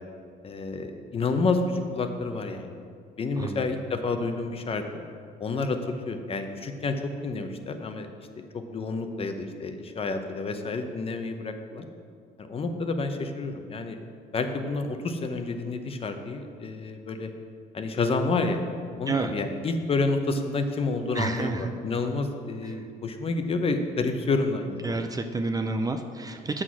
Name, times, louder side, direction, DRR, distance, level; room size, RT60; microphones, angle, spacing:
voice 1, 0.4-2.8 3.2-4.8 5.4-8.1 8.4-11.9 12.4-14.0 14.3-17.3 17.7-18.6 19.0-25.0, left 3 dB, 35° left, 7 dB, 0.8 m, -29 dB
voice 2, 21.1-21.7 24.8-26.6, right 3 dB, 20° right, 6 dB, 0.5 m, -29 dB
7.5 x 6.3 x 6.0 m, 2.2 s
cardioid pair, 110°, 17 cm